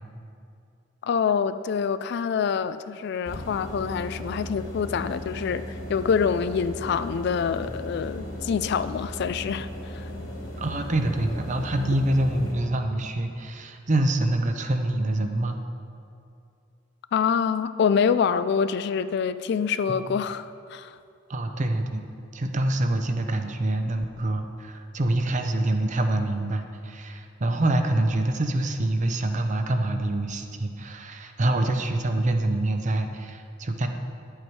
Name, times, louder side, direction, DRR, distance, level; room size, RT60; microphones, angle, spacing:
voice 1, 1.0-5.6 5.9-9.7 9.9-10.0 17.1-21.0, left 6 dB, 55° left, 13 dB, 0.3 m, -26 dB
sound 1, 3.3-12.5, left 1 dB, 80° left, 2.6 m, -36 dB
voice 2, 10.6-15.6 19.9-20.1 21.3-22.0 22.3-33.9, right 1 dB, 40° right, 6 dB, 0.7 m, -26 dB
10.5 x 7.9 x 4.7 m, 2.5 s
head